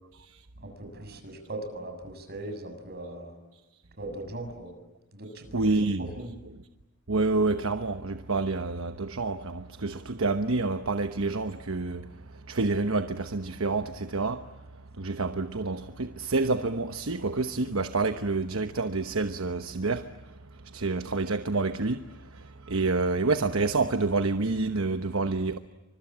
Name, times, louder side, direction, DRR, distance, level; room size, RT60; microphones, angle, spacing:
voice 1, 0.6-3.4 4.0-4.7 5.1-5.8 6.2-6.3, right 1 dB, 50° right, 7.0 m, -39 dB
voice 2, 5.5-6.1 7.1-12.1 12.3-14.5 15.0-20.3 20.7-25.6, right 3 dB, 65° right, 1.1 m, -28 dB
29.5 x 26.0 x 7.4 m
head